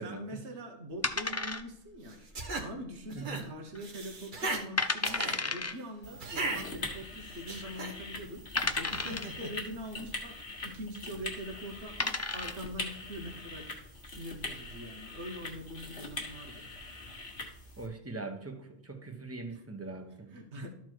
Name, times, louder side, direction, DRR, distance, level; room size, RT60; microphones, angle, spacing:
voice 1, 0.0-2.2 2.6-8.4 8.8-10.4 10.6-13.7 14.1-16.7 19.5-19.6 20.3-20.7, equal, 70° right, 3 dB, 1.6 m, -43 dB
sound 1, 1.0-2.0 2.3-2.4 3.0-3.4 3.7-3.8 4.4-4.5 4.8-5.7 6.8-6.9 7.6-7.7 8.6-9.4 11.2-11.4 11.8-12.7, left 3 dB, 25° left, 0.4 m, -32 dB
sound 2, 2.1-2.7 3.1-3.4 3.8-4.6 5.0-5.4 6.2-6.6 7.2-7.9 8.8-9.5, right 3 dB, 45° right, 1.3 m, -36 dB
voice 2, 3.1-3.5 17.8-20.6, right 3 dB, 15° right, 5 dB, 1.0 m, -42 dB
sound 3, 6.0-17.9, left 2 dB, 65° left, 1.8 m, -42 dB
13.0 x 4.5 x 4.6 m, 0.77 s
omnidirectional pair, 1.2 m